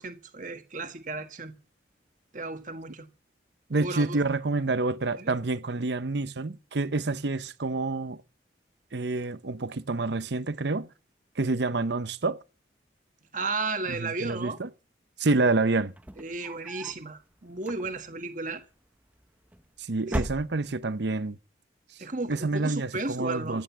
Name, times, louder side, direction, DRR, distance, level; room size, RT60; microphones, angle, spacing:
voice 1, 0.0-1.5 2.3-3.1 3.7-4.2 5.2-5.3 13.3-14.6 16.2-18.6 20.1-20.2 22.0-23.6, right 3 dB, 45° right, 1.5 m, -34 dB
voice 2, 3.7-8.2 8.9-10.9 11.4-12.4 13.9-14.7 15.2-15.9 19.8-21.4 22.3-23.6, right 3 dB, 65° right, 0.8 m, -28 dB
sound 1, 15.9-17.1 17.6-18.2 19.2-19.7 20.0-21.0, equal, 10° right, 0.7 m, -36 dB
15.0 x 9.1 x 7.4 m
head